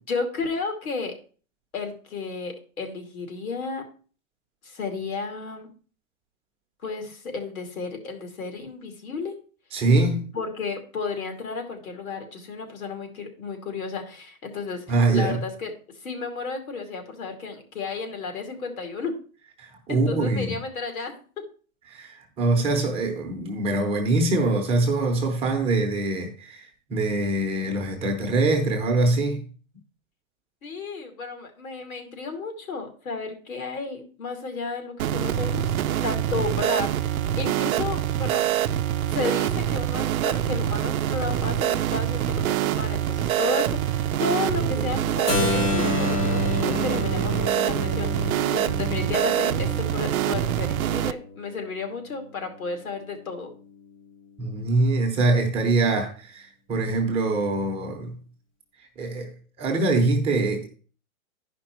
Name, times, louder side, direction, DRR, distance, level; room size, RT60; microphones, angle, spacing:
voice 1, 0.1-1.1 1.7-3.8 4.6-5.7 6.8-9.3 10.3-14.8 15.1-15.7 16.0-19.1 19.9-21.1 30.6-35.7 36.0-38.5 39.1-53.5, left 4 dB, 90° left, 2.6 m, -32 dB
voice 2, 9.7-10.3 14.9-15.4 19.6-20.6 21.9-29.4 44.5-45.0 54.4-58.2 59.0-59.3 59.6-60.7, right 2 dB, 15° right, 0.9 m, -24 dB
sound 1, 35.0-51.1, right 11 dB, 85° right, 0.6 m, -25 dB
Keyboard (musical), 45.3-51.1, left 3 dB, 20° left, 0.8 m, -29 dB
11.0 x 5.2 x 4.4 m
hypercardioid pair, 160°, 41 cm